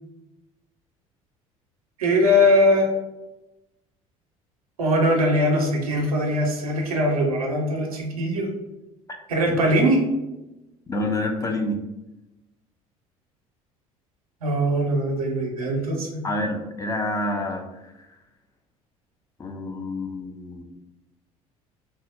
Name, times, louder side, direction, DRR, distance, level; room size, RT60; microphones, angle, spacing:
voice 1, 2.0-2.9 4.8-8.5 9.3-10.0 14.4-16.2, equal, 80° right, 0 dB, 0.6 m, -21 dB
voice 2, 10.9-11.8 16.2-17.9 19.4-20.6, left 1 dB, 20° left, 4 dB, 0.5 m, -28 dB
2.8 x 2.0 x 3.4 m, 0.98 s
figure-of-eight pair, 60°, 18 cm